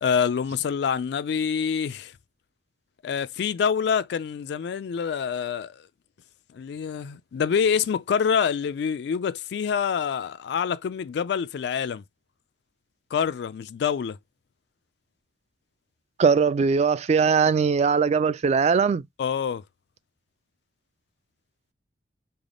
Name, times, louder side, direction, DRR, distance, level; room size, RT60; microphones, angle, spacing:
voice 1, 0.0-2.1 3.0-5.8 6.5-12.0 13.1-14.2 19.2-19.6, left 7 dB, 65° left, 0.3 m, -26 dB
voice 2, 16.2-19.0, right 5 dB, 40° right, 0.3 m, -20 dB
3.4 x 2.2 x 3.6 m
head